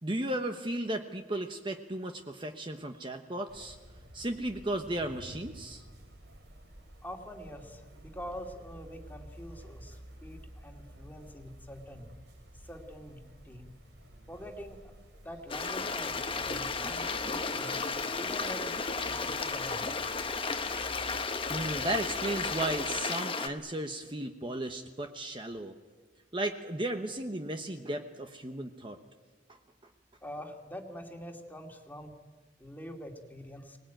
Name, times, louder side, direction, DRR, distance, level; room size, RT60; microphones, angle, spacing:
voice 1, 0.0-3.8 4.1-5.8 21.5-25.7 26.3-29.0 29.5-29.6, right 1 dB, 30° right, 5 dB, 1.1 m, -35 dB
sound 1, 3.5-23.0, equal, 80° right, 3.9 m, -51 dB
voice 2, 7.0-12.1 12.5-13.6 14.3-14.9 15.2-17.8 18.2-20.0 30.2-32.1 32.6-33.8, equal, 10° left, 3 dB, 2.4 m, -45 dB
Stream, 15.5-23.5, left 4 dB, 30° left, 1.2 m, -33 dB
25.0 x 19.5 x 9.1 m, 1.5 s
head